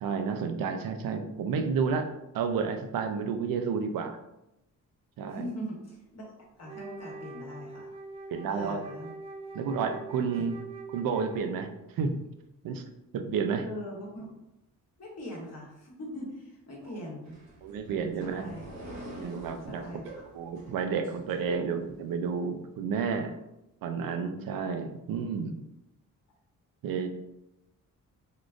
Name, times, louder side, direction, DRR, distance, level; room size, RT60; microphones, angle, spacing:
voice 1, 0.0-2.1 2.3-4.2 5.2-5.5 8.3-8.8 9.5-10.6 10.9-11.7 12.0-12.2 12.6-12.8 13.1-13.7 17.6-18.5 19.2-19.8 20.3-23.3 23.8-25.6 26.8-27.1, right 5 dB, 80° right, 6 dB, 0.5 m, -31 dB
voice 2, 5.2-6.3 6.6-7.9 8.4-9.1 10.3-10.4 13.7-14.3 15.0-17.4 18.2-18.7 19.7-20.2, equal, 50° left, -3 dB, 1.0 m, -41 dB
Wind instrument woodwind instrument, 6.6-11.8, right 3 dB, 20° right, 0.3 m, -43 dB
sound 1, 17.2-21.9, right 1 dB, 55° right, 1.0 m, -46 dB
3.6 x 2.4 x 2.4 m, 0.89 s
cardioid pair, 105°, 34 cm